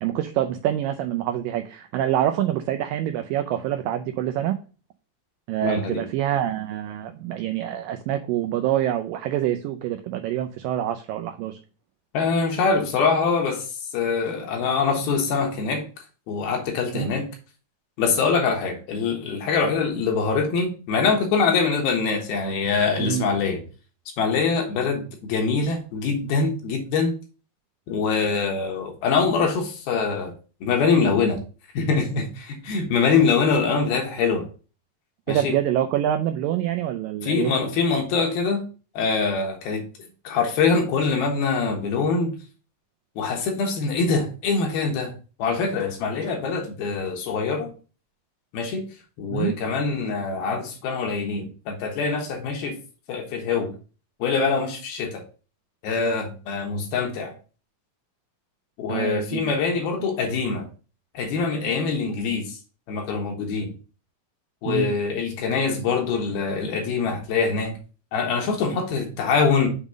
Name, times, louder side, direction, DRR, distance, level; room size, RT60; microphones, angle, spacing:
voice 1, 0.0-4.6 5.5-11.6 16.9-17.1 19.6-19.7 23.0-23.3 35.3-37.5 49.3-49.6 58.9-59.4 64.7-64.9, right 11 dB, 85° right, 7 dB, 2.0 m, -26 dB
voice 2, 5.6-6.0 12.1-13.7 13.9-15.8 16.3-17.3 18.0-23.6 24.2-27.1 27.9-30.3 30.6-31.4 31.7-34.4 35.3-35.5 37.2-38.6 38.9-39.8 40.2-42.3 43.2-45.1 45.4-47.7 48.5-48.9 49.2-52.7 53.1-53.7 54.2-55.2 55.8-57.3 58.8-60.7 61.1-62.6 62.9-63.7 64.6-67.7 68.1-69.7, left 5 dB, 75° left, 3 dB, 3.1 m, -24 dB
7.1 x 3.7 x 5.0 m, 0.35 s
omnidirectional pair, 4.5 m